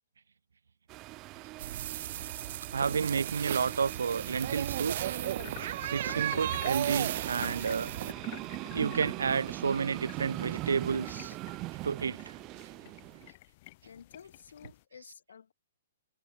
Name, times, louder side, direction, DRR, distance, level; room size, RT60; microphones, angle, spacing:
sound 1, 0.9-13.3, right 21 dB, 30° right, 0.7 m, -41 dB
sound 2, 1.6-8.1, right 12 dB, 55° right, 1.7 m, -35 dB
voice 1, 2.7-5.2 5.9-7.9 8.7-11.4 11.8-12.3 15.0-15.1, right 6 dB, 90° right, 0.5 m, -31 dB
sound 3, 5.2-14.8, left 19 dB, 40° left, 3.9 m, -50 dB
voice 2, 13.8-15.5, left 7 dB, 80° left, 7.9 m, -52 dB
hypercardioid pair, 145°, 0 cm